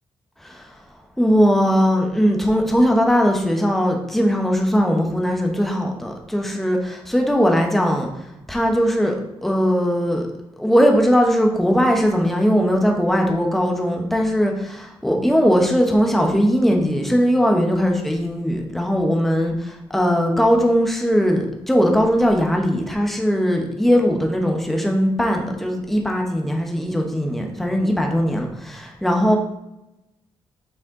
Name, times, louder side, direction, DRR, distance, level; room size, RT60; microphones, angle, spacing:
voice 1, 0.4-0.7 1.2-8.1 8.5-9.1 9.4-10.3 10.6-29.4, equal, ahead, 1 dB, 1.0 m, -19 dB
6.3 x 4.2 x 3.9 m, 0.89 s
cardioid pair, 90°, 11 cm